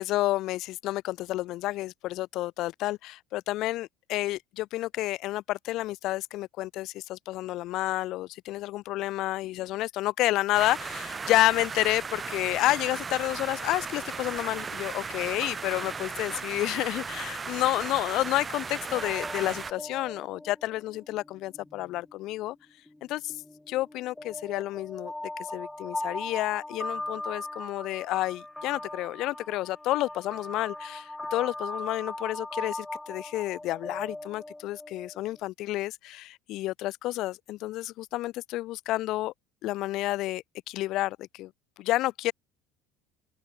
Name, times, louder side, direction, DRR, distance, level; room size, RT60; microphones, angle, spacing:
voice 1, 0.0-22.6 23.1-23.3 23.7-25.1 25.5-39.3 39.6-41.5 41.8-42.3, left 16 dB, 55° left, 2.5 m, -30 dB
sound 1, 10.5-19.7, right 5 dB, 20° right, 2.3 m, -36 dB
sound 2, 18.6-22.2 22.9-35.4, left 1 dB, 5° left, 4.6 m, -39 dB
open air
cardioid pair, 140°, 0 cm